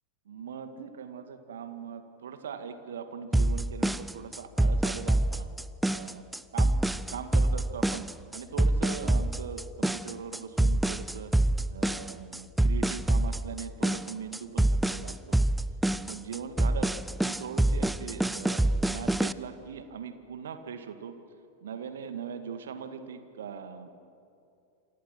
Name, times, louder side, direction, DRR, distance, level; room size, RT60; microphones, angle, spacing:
voice 1, 0.3-5.5 5.9-6.3 6.5-6.7 7.1-8.1 8.3-11.3 11.7-15.4 16.0-16.9 17.3-21.2 21.6-23.9, right 7 dB, 65° right, 9 dB, 2.1 m, -40 dB
sound 1, 3.3-19.3, right 1 dB, 5° right, 0.6 m, -26 dB
28.0 x 26.5 x 6.1 m, 2.6 s
figure-of-eight pair, 90°, 0 cm